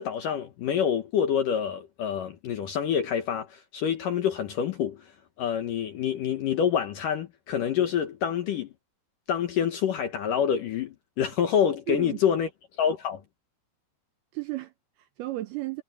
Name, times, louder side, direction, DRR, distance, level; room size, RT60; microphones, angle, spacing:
voice 1, 0.0-5.1 5.4-8.7 9.3-12.5 12.8-13.2, left 8 dB, 65° left, 2.2 m, -27 dB
voice 2, 11.9-12.4 14.3-15.8, right 19 dB, 80° right, 2.4 m, -34 dB
omnidirectional pair, 5.3 m